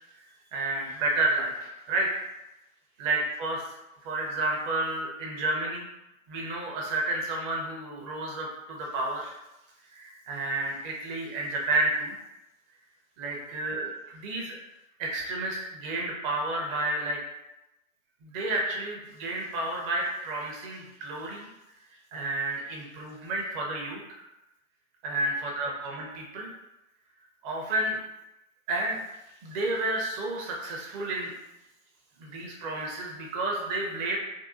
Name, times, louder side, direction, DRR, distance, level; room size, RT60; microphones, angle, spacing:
voice 1, 0.5-2.1 3.0-3.7 4.0-5.9 6.3-9.3 9.9-12.2 13.2-14.6 15.0-17.2 18.2-21.5 22.1-24.2 25.0-26.5 27.4-28.0 28.7-29.0 29.4-31.3 32.2-34.2, right 2 dB, 20° right, -2 dB, 0.5 m, -31 dB
3.5 x 2.3 x 2.5 m, 0.94 s
figure-of-eight pair, 115°, 42 cm